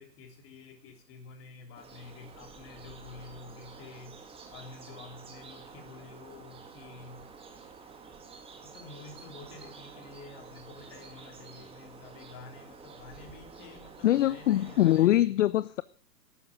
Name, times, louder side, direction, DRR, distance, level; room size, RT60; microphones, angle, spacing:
voice 1, 0.0-4.2 4.5-7.2 8.6-15.4, left 4 dB, 25° left, 3.3 m, -49 dB
sound 1, 1.7-15.1, right 5 dB, 10° right, 1.8 m, -49 dB
voice 2, 14.0-15.8, left 13 dB, 50° left, 0.5 m, -23 dB
12.5 x 9.2 x 7.3 m
hypercardioid pair, 125°, 49 cm